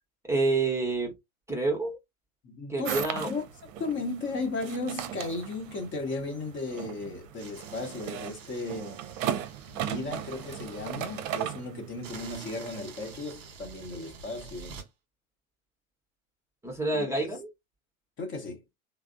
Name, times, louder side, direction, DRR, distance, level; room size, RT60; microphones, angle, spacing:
voice 1, 0.3-1.1 1.5-2.0 2.7-3.3 16.6-17.5, right 3 dB, 5° right, 0.8 m, -28 dB
voice 2, 2.4-3.4 3.8-9.0 9.7-14.8 16.9-17.3 18.2-18.6, left 3 dB, 30° left, 0.9 m, -35 dB
sound 1, 2.8-12.2, right 10 dB, 65° right, 0.6 m, -37 dB
sound 2, 7.4-11.4 12.0-14.9, right 5 dB, 35° right, 1.1 m, -48 dB
3.1 x 2.0 x 2.5 m
hypercardioid pair, 90°, 42 cm